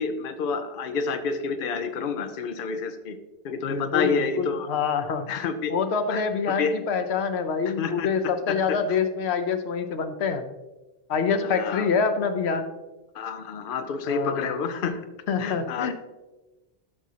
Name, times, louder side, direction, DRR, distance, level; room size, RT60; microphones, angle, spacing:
voice 1, 0.0-3.2 3.4-4.7 5.3-5.7 6.1-6.2 6.6-6.7 7.8-8.1 8.5-8.8 11.4-11.9 13.1-15.0 15.4-15.9, left 5 dB, 60° left, 8 dB, 0.8 m, -29 dB
voice 2, 3.6-5.3 5.7-10.4 11.1-12.7 14.1-14.5 15.3-15.9, left 5 dB, 90° left, 8 dB, 1.0 m, -26 dB
12.0 x 6.1 x 2.8 m, 1.1 s
omnidirectional pair, 1.1 m